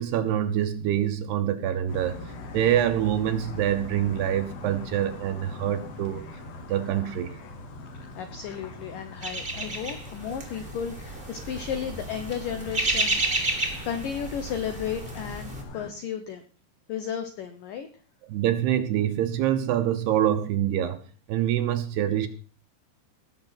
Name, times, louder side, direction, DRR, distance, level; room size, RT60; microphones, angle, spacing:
voice 1, 0.0-6.3 6.7-7.4 18.3-21.0 21.3-22.3, right 11 dB, 70° right, 9 dB, 2.7 m, -25 dB
sound 1, 1.9-15.9, left 2 dB, 60° left, 3.3 m, -42 dB
voice 2, 8.2-16.4 16.9-17.9, left 8 dB, 80° left, 8 dB, 1.9 m, -34 dB
sound 2, 9.2-15.6, right 2 dB, 20° right, 1.4 m, -31 dB
18.0 x 6.8 x 5.9 m, 0.40 s
omnidirectional pair, 5.4 m